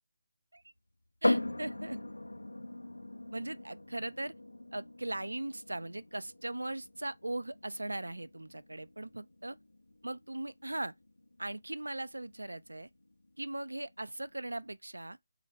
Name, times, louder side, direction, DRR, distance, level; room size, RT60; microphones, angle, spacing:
sound 1, 1.2-14.7, left 1 dB, 80° left, 0.3 m, -40 dB
voice 1, 1.2-2.0 3.3-4.3 4.7-9.6 10.0-10.9 11.4-12.9 13.4-15.2, right 1 dB, 85° right, 0.3 m, -39 dB
3.4 x 2.2 x 3.3 m
figure-of-eight pair, 155°, 0 cm